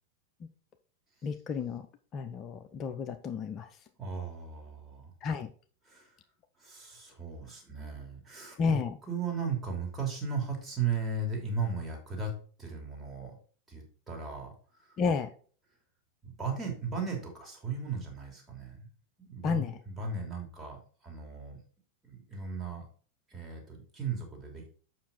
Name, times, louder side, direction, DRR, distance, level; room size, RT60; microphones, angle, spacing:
voice 1, 1.2-1.9 2.1-3.7 5.2-5.5 8.6-9.0 15.0-15.3 19.4-19.8, left 5 dB, 30° left, 8 dB, 0.6 m, -31 dB
voice 2, 4.0-5.1 5.8-6.1 6.6-8.8 9.1-12.3 12.6-13.3 13.7-14.5 14.9-15.0 16.2-18.9 19.2-21.6 22.0-22.8 23.3-24.7, right 4 dB, 15° right, -1 dB, 2.9 m, -36 dB
7.4 x 5.8 x 4.3 m, 0.42 s
figure-of-eight pair, 90°, 0 cm